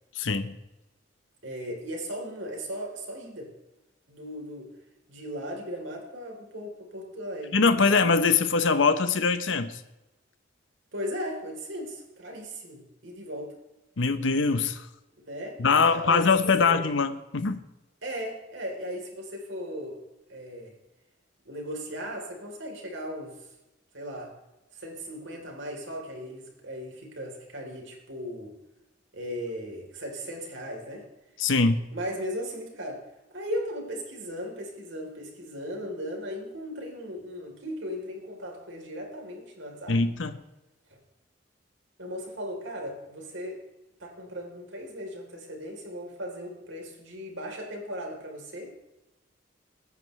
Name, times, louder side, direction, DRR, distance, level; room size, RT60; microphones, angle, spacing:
voice 1, 0.1-0.6 7.5-9.8 14.0-14.9 15.6-17.6 31.4-31.8 39.9-40.4, left 4 dB, 75° left, 10 dB, 0.8 m, -23 dB
voice 2, 1.4-3.5 4.1-4.7 5.1-7.6 10.9-13.5 15.2-16.7 18.0-20.0 20.3-20.7 21.5-23.3 23.9-24.3 24.7-28.5 29.1-31.0 31.9-33.0 33.3-40.0 42.0-43.6 44.0-48.7, equal, 80° right, 1 dB, 3.6 m, -37 dB
21.5 x 9.6 x 3.2 m, 1.0 s
head